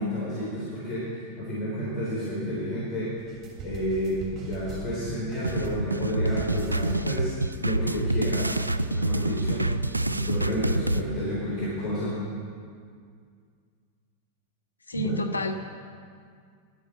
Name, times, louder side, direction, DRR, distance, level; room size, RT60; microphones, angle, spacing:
voice 1, 0.0-3.1 3.6-8.5 8.9-9.7 10.1-12.2 14.9-15.1, equal, 30° left, -8 dB, 3.6 m, -30 dB
sound 1, 3.2-5.0 5.3-6.0 6.3-7.2, right 4 dB, 20° right, 2.8 m, -38 dB
sound 2, 5.4-11.0, right 2 dB, 85° right, 0.3 m, -27 dB
voice 2, 14.9-15.5, left 1 dB, 80° left, 5 dB, 0.8 m, -29 dB
11.0 x 8.7 x 6.9 m, 2.1 s
figure-of-eight pair, 90°, 0 cm